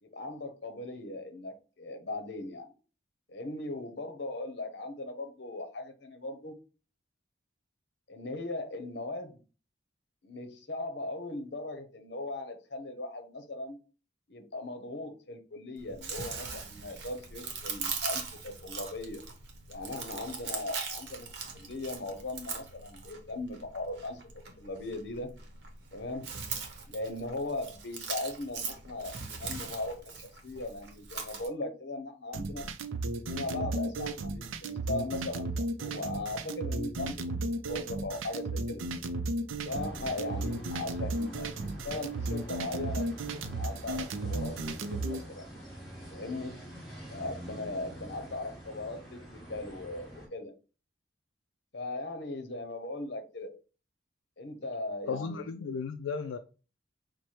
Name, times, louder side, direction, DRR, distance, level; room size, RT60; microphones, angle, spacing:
voice 1, 0.0-2.7 3.3-6.5 8.1-9.4 10.2-13.8 14.3-19.2 19.7-21.3 21.5-24.2 24.5-25.3 25.9-26.3 26.9-32.7 33.2-35.5 35.8-38.8 39.7-43.1 43.5-45.5 46.1-46.6 47.1-50.5 51.7-53.5 54.4-55.5, left 2 dB, 60° left, 0.8 m, -38 dB
Chewing mastication, 15.8-31.5, right 5 dB, 60° right, 0.9 m, -41 dB
sound 1, 32.3-45.2, right 2 dB, 85° right, 0.5 m, -34 dB
sound 2, 39.6-50.3, right 1 dB, ahead, 1.6 m, -47 dB
voice 2, 55.1-56.4, left 5 dB, 85° left, 0.3 m, -34 dB
4.6 x 2.1 x 4.3 m
head